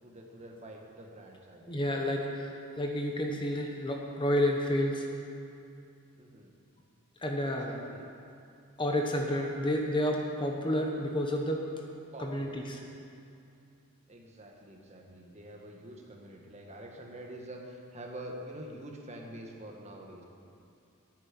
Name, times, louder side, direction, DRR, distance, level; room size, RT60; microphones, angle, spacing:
voice 1, 0.0-1.8 6.2-6.5 7.5-8.1 12.1-12.6 14.1-20.2, right 1 dB, 30° right, 0 dB, 1.6 m, -46 dB
voice 2, 1.7-5.1 7.2-7.7 8.8-11.7 12.2-12.8, equal, 20° left, 1 dB, 1.1 m, -30 dB
9.7 x 9.5 x 9.9 m, 2.5 s
head